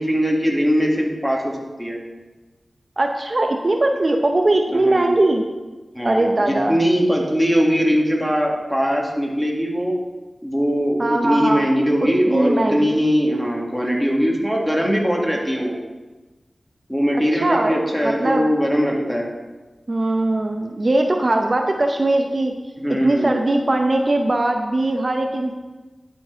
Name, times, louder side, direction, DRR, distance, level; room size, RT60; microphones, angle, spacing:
voice 1, 0.0-2.0 4.7-5.1 6.0-9.9 10.4-15.7 16.9-19.3 22.8-23.3, equal, ahead, -1 dB, 1.9 m, -20 dB
voice 2, 3.0-5.4 6.0-6.8 11.0-11.7 12.3-12.9 17.3-18.5 19.9-22.5 22.9-25.5, right 2 dB, 50° right, 3 dB, 0.7 m, -20 dB
11.5 x 4.6 x 4.5 m, 1.2 s
cardioid pair, 45°, 0 cm